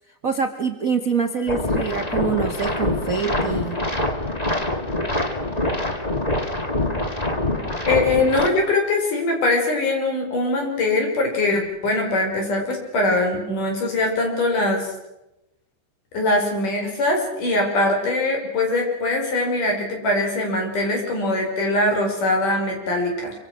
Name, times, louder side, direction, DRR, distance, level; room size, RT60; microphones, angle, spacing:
voice 1, 0.2-3.8, right 5 dB, 50° right, 5 dB, 1.0 m, -25 dB
sound 1, 1.5-8.5, left 1 dB, 15° left, 2.1 m, -25 dB
voice 2, 7.9-14.9 16.1-23.3, left 2 dB, 80° left, 2 dB, 6.9 m, -22 dB
25.5 x 25.0 x 6.3 m, 0.93 s
omnidirectional pair, 3.6 m